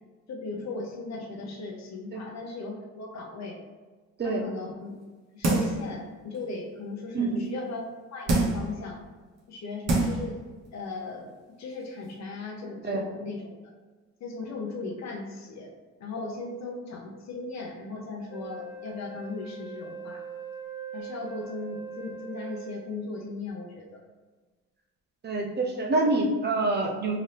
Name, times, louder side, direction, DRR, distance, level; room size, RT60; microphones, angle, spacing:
voice 1, 0.3-3.6 4.2-4.9 5.3-7.8 8.1-9.0 9.5-10.4 10.7-13.5 14.2-15.7 16.0-20.2 20.9-24.0, left 3 dB, 60° left, 0 dB, 0.9 m, -37 dB
sound 1, 5.4-5.9 6.3-6.4 8.3-8.7 9.4-9.5 9.9-10.3 10.7-10.8, right 2 dB, 60° right, 1.1 m, -25 dB
Wind instrument woodwind instrument, 18.3-23.0, right 5 dB, 85° left, 1.1 m, -41 dB
voice 2, 25.2-27.2, right 2 dB, 35° right, 2 dB, 0.6 m, -26 dB
3.9 x 2.6 x 3.3 m, 1.3 s
cardioid pair, 90°, 30 cm